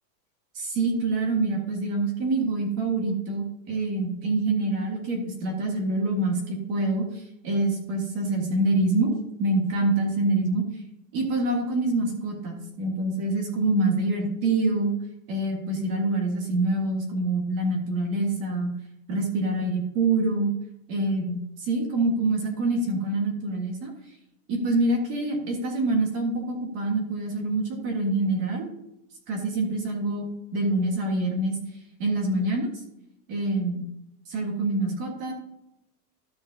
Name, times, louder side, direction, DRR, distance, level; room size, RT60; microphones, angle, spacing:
voice 1, 0.5-9.1 9.4-10.6 11.1-14.9 15.3-18.7 19.1-20.5 20.9-23.9 24.5-28.7 29.3-31.6 32.0-32.7 33.3-33.9 34.3-35.3, right 2 dB, 30° right, 1 dB, 1.6 m, -26 dB
13.5 x 6.4 x 2.8 m, 0.85 s
supercardioid pair, 175°, 48 cm